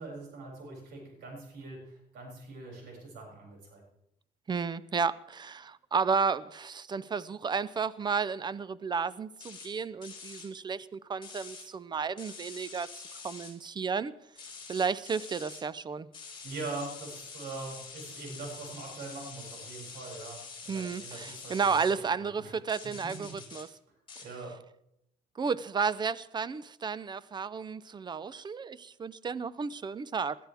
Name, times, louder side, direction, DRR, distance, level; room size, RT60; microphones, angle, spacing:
voice 1, 0.0-3.8 16.4-21.9 22.2-22.5 22.8-23.3 24.2-24.5, right 3 dB, 75° right, -1 dB, 7.0 m, -43 dB
voice 2, 4.5-12.9 13.2-14.1 14.7-16.1 20.7-23.7 25.4-30.4, right 5 dB, 25° right, 18 dB, 0.6 m, -32 dB
sound 1, 9.4-9.7 10.0-10.5 11.2-11.6 12.2-13.5 14.3-15.6 16.1-21.9 22.7-23.6 24.1-24.3, left 5 dB, 30° left, 5.6 m, -46 dB
20.5 x 13.0 x 3.5 m, 0.79 s
cardioid pair, 110°, 17 cm